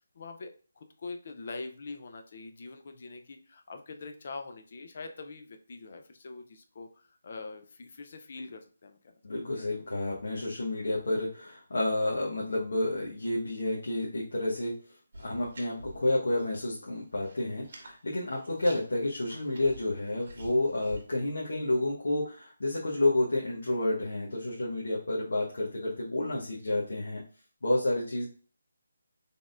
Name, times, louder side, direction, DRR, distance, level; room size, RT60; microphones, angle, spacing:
voice 1, 0.1-9.2, left 3 dB, 45° left, 6 dB, 0.5 m, -44 dB
voice 2, 9.2-14.8 15.2-27.2 27.6-28.2, left 1 dB, 75° left, -4 dB, 1.1 m, -30 dB
sound 1, 15.1-16.7 17.0-18.0 18.3-21.0, right 1 dB, 45° right, 1.1 m, -49 dB
4.1 x 3.5 x 2.4 m, 0.41 s
hypercardioid pair, 170°, 0 cm